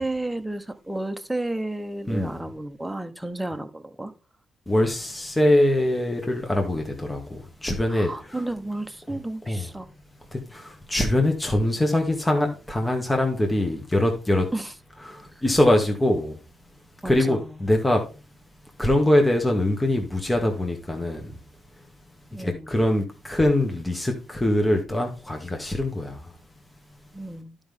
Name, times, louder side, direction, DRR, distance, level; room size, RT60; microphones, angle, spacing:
voice 1, 0.0-4.1 7.9-9.9 14.5-14.7 17.0-17.6 22.3-22.8 27.1-27.6, right 2 dB, 10° right, 1.1 m, -32 dB
voice 2, 4.7-8.4 9.1-9.2 9.5-9.7 10.3-14.5 15.1-16.4 17.0-18.0 18.8-21.3 22.4-26.3, left 1 dB, 15° left, 1.7 m, -23 dB
11.0 x 5.4 x 3.6 m
hypercardioid pair, 50°, 0 cm